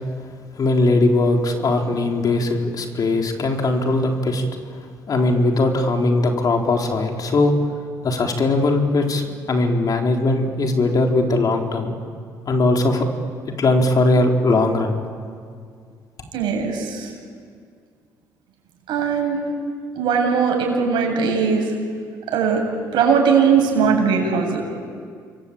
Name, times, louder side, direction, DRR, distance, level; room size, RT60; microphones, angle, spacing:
voice 1, 0.6-4.4 5.1-7.6 8.0-11.9 12.5-13.1 13.5-15.0, left 2 dB, 50° left, 2 dB, 4.3 m, -19 dB
voice 2, 16.3-17.1 18.9-19.5 20.0-21.7 22.3-22.6 22.9-24.6, right 6 dB, 70° right, 1 dB, 7.8 m, -19 dB
28.5 x 22.5 x 8.8 m, 2.1 s
supercardioid pair, 65°, 8 cm